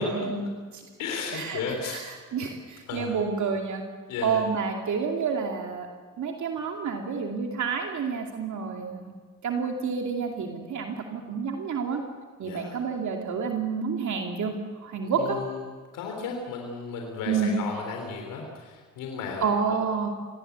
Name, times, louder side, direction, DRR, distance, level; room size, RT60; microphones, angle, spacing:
voice 1, 0.0-3.8 4.2-5.9 6.2-9.1 9.4-12.0 12.4-15.4 17.3-17.5 19.4-20.1, right 5 dB, 65° right, 2 dB, 2.6 m, -29 dB
voice 2, 1.0-2.0 2.9-3.1 4.1-4.4 12.4-12.8 15.2-15.5 15.9-19.5, left 5 dB, 90° left, 2 dB, 3.5 m, -34 dB
25.5 x 19.0 x 8.1 m, 1.5 s
cardioid pair, 75°, 32 cm